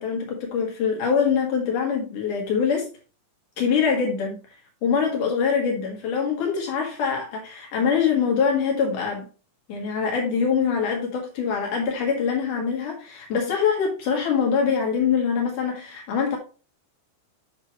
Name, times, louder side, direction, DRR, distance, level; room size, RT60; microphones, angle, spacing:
voice 1, 0.0-2.9 3.6-4.6 4.8-9.3 9.7-16.4, left 6 dB, 85° left, 1.8 m, -24 dB
8.4 x 5.9 x 3.0 m
omnidirectional pair, 5.7 m